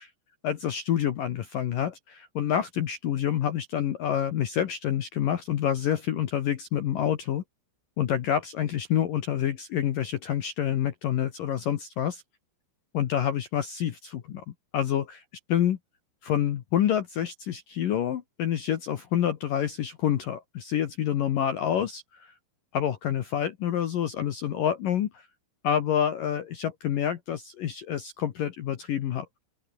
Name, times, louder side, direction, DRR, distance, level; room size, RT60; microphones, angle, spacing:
voice 1, 0.4-7.4 8.0-12.2 12.9-14.4 14.7-15.2 15.5-15.8 16.2-22.3 22.7-25.3 25.6-29.3, left 10 dB, 65° left, 2.3 m, -27 dB
open air
omnidirectional pair, 5.7 m